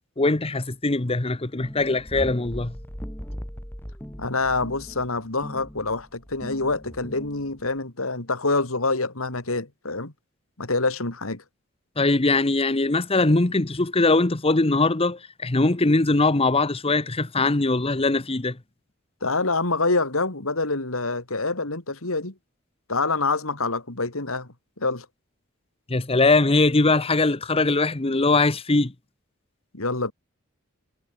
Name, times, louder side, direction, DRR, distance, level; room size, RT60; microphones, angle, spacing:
voice 1, 0.2-2.8 12.0-18.6 25.9-28.9, left 2 dB, 30° left, 1.0 m, -21 dB
sound 1, 1.6-7.8, equal, 10° left, 3.0 m, -39 dB
voice 2, 4.2-10.1 10.6-11.4 19.2-22.3 22.9-24.5 24.8-25.0 29.7-30.1, left 3 dB, 85° left, 3.4 m, -26 dB
head